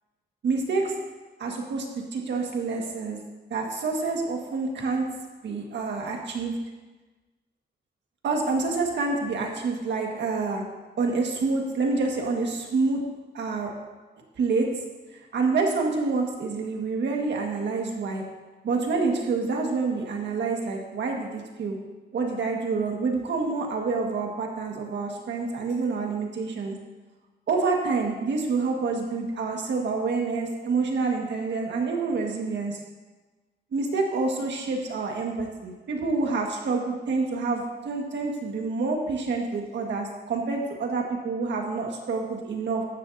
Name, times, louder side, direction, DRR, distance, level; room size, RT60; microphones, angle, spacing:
voice 1, 0.4-0.9 1.4-1.9 2.1-3.2 3.5-5.1 5.4-6.6 8.2-10.6 11.0-13.0 13.3-13.7 14.4-14.7 15.3-18.2 18.6-21.8 22.1-26.8 27.5-32.8 33.7-42.8, right 4 dB, 80° right, 1 dB, 1.8 m, -27 dB
14.0 x 12.0 x 2.8 m, 1.2 s
wide cardioid pair, 145°, 18 cm